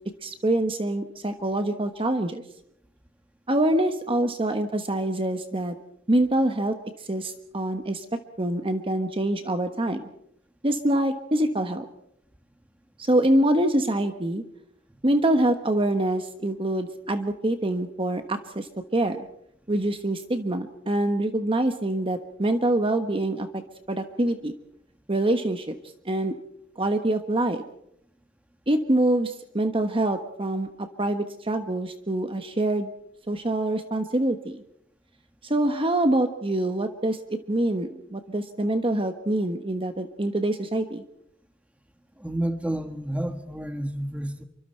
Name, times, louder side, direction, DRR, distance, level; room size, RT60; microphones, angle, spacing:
voice 1, 0.2-2.4 3.5-5.7 6.1-8.0 8.4-10.0 10.6-11.9 13.0-14.4 15.0-19.3 19.7-23.6 23.9-24.5 25.1-25.7 26.0-26.3 26.8-27.6 28.7-32.9 33.3-34.6 35.4-37.2 37.5-41.0, right 1 dB, 25° right, 7 dB, 1.3 m, -25 dB
voice 2, 42.2-44.4, right 1 dB, 5° right, 8 dB, 1.6 m, -30 dB
28.0 x 25.0 x 4.6 m, 0.72 s
head